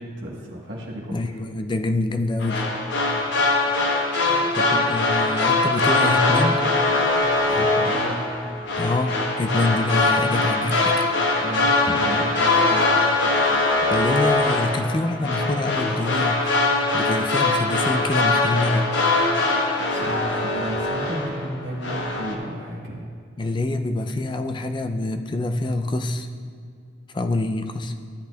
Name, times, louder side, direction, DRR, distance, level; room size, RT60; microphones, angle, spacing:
voice 1, 0.0-1.1 4.2-4.6 7.5-8.2 11.3-12.9 19.9-23.0, equal, 60° right, -5 dB, 1.3 m, -33 dB
voice 2, 1.1-2.8 4.5-6.7 8.8-11.1 13.9-16.6 16.9-18.9 23.4-26.3 27.1-27.9, left 2 dB, 25° left, 7 dB, 0.3 m, -25 dB
sound 1, 2.4-21.5 21.8-22.3, left 2 dB, 65° left, 1.0 m, -22 dB
13.5 x 8.2 x 2.3 m, 2.2 s
head